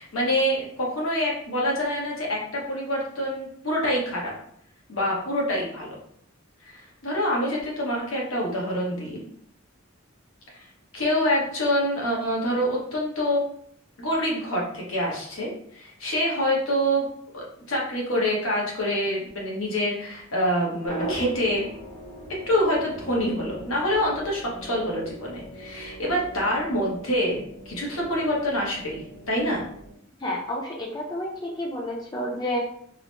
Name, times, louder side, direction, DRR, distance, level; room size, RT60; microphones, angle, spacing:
voice 1, 0.0-4.3 4.9-5.9 6.6-9.2 10.5-10.7 10.9-13.4 14.0-21.7 22.5-29.6, equal, 90° left, -3 dB, 1.0 m, -26 dB
sound 1, 20.8-29.9, right 2 dB, 70° left, 1.4 m, -40 dB
voice 2, 30.2-32.6, left 1 dB, 20° left, -2 dB, 0.4 m, -30 dB
2.9 x 2.0 x 3.0 m, 0.66 s
head